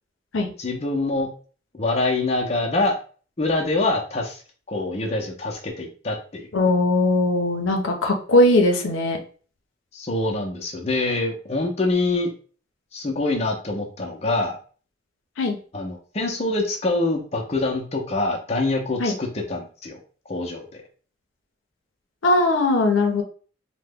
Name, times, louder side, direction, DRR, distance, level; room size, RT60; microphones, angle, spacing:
voice 1, 0.6-1.3 1.7-2.9 3.4-4.4 4.7-6.5 9.9-12.3 12.9-14.6 15.7-20.0 20.3-20.8, left 2 dB, 35° left, 0 dB, 0.6 m, -25 dB
voice 2, 6.5-9.2 15.4-15.6 19.0-19.2 22.2-23.2, left 2 dB, 85° left, 3 dB, 0.6 m, -19 dB
2.9 x 2.1 x 3.4 m, 0.40 s
head